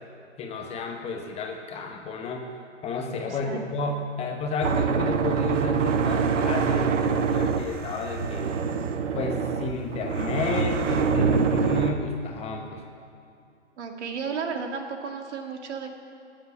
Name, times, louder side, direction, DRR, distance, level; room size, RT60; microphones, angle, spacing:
voice 1, 0.4-2.5 2.8-8.6 9.1-12.8, left 3 dB, 15° left, 2 dB, 1.0 m, -32 dB
voice 2, 3.3-3.7 13.8-15.9, right 5 dB, 70° right, 4 dB, 1.9 m, -33 dB
sound 1, 4.6-11.9, right 6 dB, 90° right, 1.0 m, -25 dB
16.0 x 7.5 x 6.9 m, 2.5 s
hypercardioid pair, 140°, 36 cm